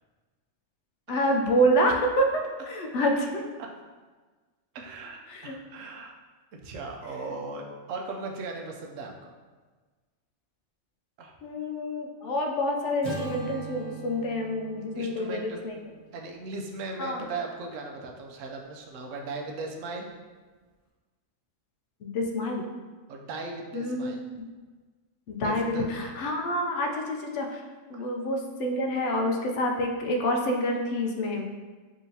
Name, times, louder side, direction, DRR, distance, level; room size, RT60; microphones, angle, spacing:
voice 1, 1.1-3.4 5.3-5.6 7.2-7.3 11.4-15.8 17.0-17.2 22.0-22.7 23.7-24.1 25.3-27.6 27.9-31.5, equal, 75° left, 2 dB, 0.9 m, -27 dB
voice 2, 4.7-6.1 6.5-9.3 11.2-11.4 14.9-15.6 16.1-20.1 23.1-24.2 25.4-25.9 27.9-28.0, right 3 dB, 85° right, 1 dB, 1.0 m, -38 dB
Acoustic guitar / Strum, 13.0-17.4, right 4 dB, 50° left, 1.2 m, -41 dB
4.9 x 2.9 x 2.7 m, 1.4 s
omnidirectional pair, 1.3 m